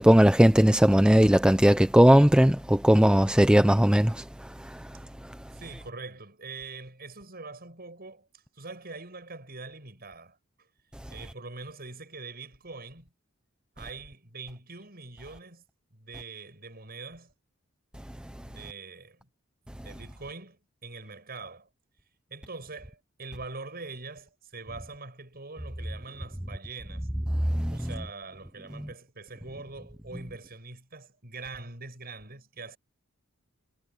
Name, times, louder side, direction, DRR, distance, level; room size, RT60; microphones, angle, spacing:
voice 1, 0.0-4.2 27.5-27.8, equal, 5° right, 0.7 m, -18 dB
voice 2, 5.5-8.3 8.5-10.4 11.1-13.1 13.8-15.6 15.9-17.3 18.4-19.3 19.7-21.7 22.3-27.1 27.7-32.8, right 3 dB, 50° right, 7.8 m, -43 dB
head